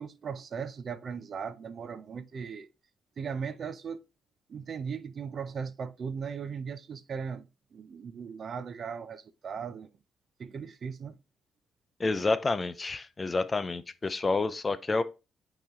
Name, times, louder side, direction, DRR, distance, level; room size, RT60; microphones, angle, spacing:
voice 1, 0.0-2.7 3.2-4.0 4.5-9.9 10.4-11.2, right 6 dB, 50° right, 0.6 m, -38 dB
voice 2, 12.0-15.0, left 3 dB, 30° left, 0.5 m, -29 dB
8.4 x 3.1 x 3.7 m
cardioid pair, 90°, 0 cm